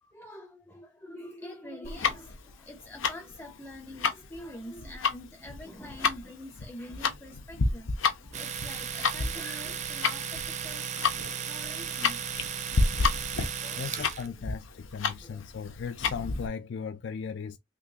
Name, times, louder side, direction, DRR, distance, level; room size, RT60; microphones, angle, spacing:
voice 1, 0.0-12.2 13.6-14.3 15.1-15.4, left 1 dB, 10° left, 0.6 m, -46 dB
Tick-tock, 1.8-16.5, left 4 dB, 75° left, 0.7 m, -31 dB
Domestic sounds home sounds, 8.3-14.3, right 7 dB, 35° right, 0.5 m, -35 dB
voice 2, 13.7-17.6, left 6 dB, 60° left, 0.4 m, -37 dB
3.8 x 3.1 x 2.7 m
head